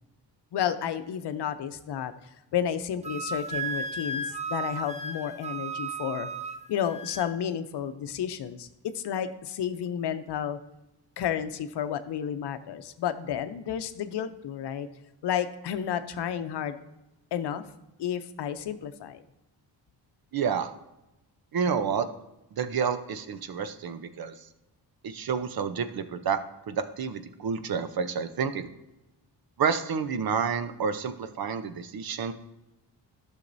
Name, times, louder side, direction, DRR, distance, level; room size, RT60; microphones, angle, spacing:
voice 1, 0.5-2.1 2.5-6.3 6.7-8.7 8.9-10.6 11.2-14.9 15.2-16.8 17.3-17.6 18.0-19.2, left 9 dB, 65° left, 10 dB, 0.7 m, -31 dB
Wind instrument woodwind instrument, 3.0-7.3, right 3 dB, 15° right, 0.5 m, -35 dB
voice 2, 20.3-20.7 21.5-22.1 22.5-24.3 25.0-26.4 26.7-28.7 29.6-32.3, right 6 dB, 55° right, 10 dB, 0.8 m, -29 dB
11.5 x 6.5 x 2.7 m, 0.94 s
cardioid pair, 75°, 43 cm